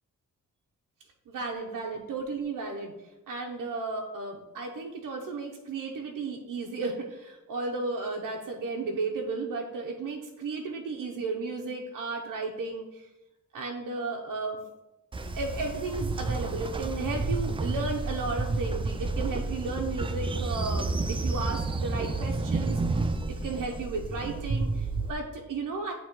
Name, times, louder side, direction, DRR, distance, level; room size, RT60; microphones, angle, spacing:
voice 1, 1.3-2.9 3.3-13.1 13.5-14.6 15.3-25.9, right 3 dB, 80° right, 0 dB, 0.8 m, -34 dB
Train, 15.1-25.1, right 3 dB, 20° right, 0.3 m, -30 dB
8.8 x 3.0 x 4.4 m, 0.99 s
wide cardioid pair, 105°, 31 cm